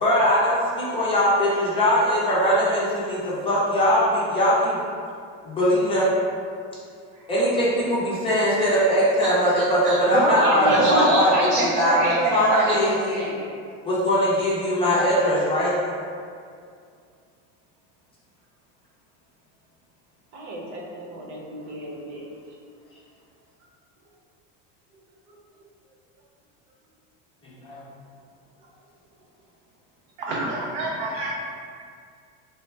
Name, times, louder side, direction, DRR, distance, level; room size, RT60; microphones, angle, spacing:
voice 1, 0.0-4.8 5.4-6.1 7.3-11.3 11.7-13.3 13.8-15.7 27.6-27.8, equal, 15° left, -9 dB, 0.5 m, -21 dB
voice 2, 9.2-10.0 10.6-12.8 30.2-31.3, right 2 dB, 55° right, -3 dB, 0.5 m, -26 dB
voice 3, 10.1-13.5 20.3-22.3 24.9-25.0 25.3-25.4 28.6-28.7, right 1 dB, 75° right, -3 dB, 1.0 m, -27 dB
3.2 x 2.2 x 4.2 m, 2.2 s
cardioid pair, 170°, 36 cm